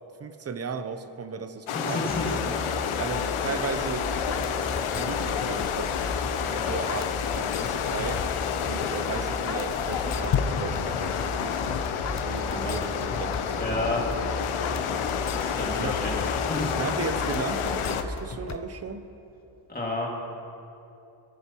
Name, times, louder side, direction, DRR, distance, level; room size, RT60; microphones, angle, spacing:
voice 1, 0.2-2.5 3.0-4.1 4.9-5.9 6.5-8.2 8.7-14.3 15.8-16.0 16.7-19.1, right 5 dB, 30° right, 10 dB, 0.6 m, -36 dB
sound 1, 1.7-18.0, left 7 dB, 80° left, 0.8 m, -29 dB
voice 2, 1.7-2.3 12.5-12.8 13.6-14.0 15.3-16.2 16.4-16.8 19.7-20.1, left 2 dB, 20° left, -3 dB, 2.2 m, -31 dB
sound 2, 2.1-18.1, left 1 dB, 55° left, 2.8 m, -37 dB
sound 3, 4.3-18.6, left 7 dB, 35° left, 0.5 m, -39 dB
20.0 x 9.9 x 3.0 m, 2.8 s
wide cardioid pair, 120°, 49 cm